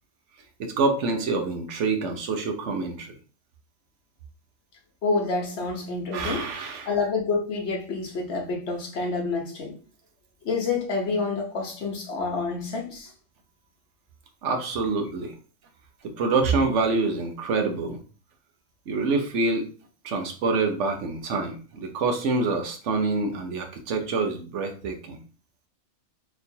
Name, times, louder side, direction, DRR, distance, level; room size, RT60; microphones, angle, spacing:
voice 1, 0.6-3.1 6.1-6.9 14.4-15.3 16.0-18.0 18.9-19.7 20.0-25.2, right 3 dB, 60° right, 1.0 m, -26 dB
voice 2, 5.0-6.5 6.8-9.7 10.4-13.1, left 4 dB, 50° left, 1.2 m, -28 dB
4.0 x 3.0 x 2.7 m
omnidirectional pair, 1.5 m